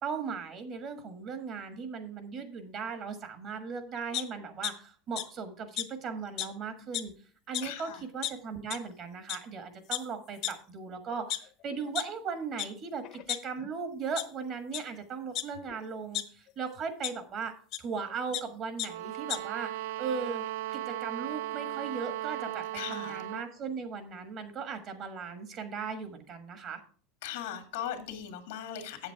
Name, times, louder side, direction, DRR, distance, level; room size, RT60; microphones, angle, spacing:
voice 1, 0.0-7.1 7.5-17.5 17.8-19.7 20.0-20.4 20.7-26.8, right 5 dB, 40° right, 8 dB, 1.4 m, -38 dB
sound 1, 4.1-4.7 5.2-5.3 5.8-5.9 6.4-6.5 6.8-7.1 7.5-7.6 8.2-8.3 8.7-8.8 9.3-9.4 9.9-10.0 10.4-10.5 11.1-12.0 12.6-12.7 13.0-13.8 14.2-14.3 14.7-14.8 15.4-16.2 17.0-17.1 17.7-17.8 18.1-18.4 18.8-18.9 19.1-19.4, left 13 dB, 50° left, 0.8 m, -33 dB
voice 2, 7.6-8.0 22.7-23.2 27.2-29.1, left 9 dB, 90° left, 6 dB, 1.8 m, -38 dB
sound 2, 18.8-23.5, right 14 dB, 85° right, 0.3 m, -37 dB
7.9 x 7.3 x 4.6 m, 0.43 s
supercardioid pair, 145°, 0 cm